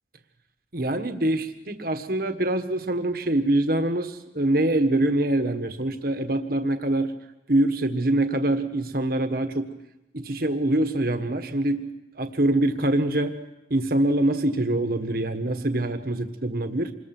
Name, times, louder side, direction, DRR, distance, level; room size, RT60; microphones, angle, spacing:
voice 1, 0.7-7.1 7.5-9.7 10.1-11.9 12.1-13.4 13.7-16.9, right 1 dB, 50° right, 7 dB, 1.6 m, -24 dB
27.0 x 21.5 x 6.1 m, 0.92 s
head